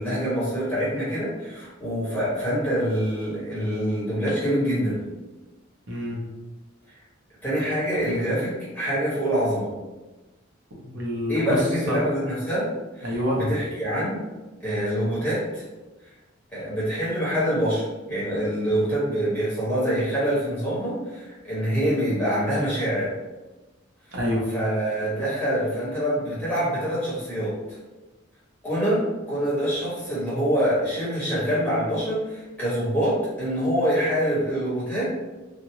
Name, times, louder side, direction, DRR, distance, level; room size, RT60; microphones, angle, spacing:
voice 1, 0.0-5.0 7.4-9.7 11.3-12.7 12.9-14.2 14.6-15.6 16.5-23.1 24.5-27.8 28.6-35.0, equal, 10° left, -10 dB, 1.5 m, -25 dB
voice 2, 5.9-6.2 10.8-12.0 13.0-13.4 24.1-24.4, equal, 60° right, -3 dB, 1.0 m, -27 dB
3.4 x 2.5 x 2.9 m, 1.1 s
head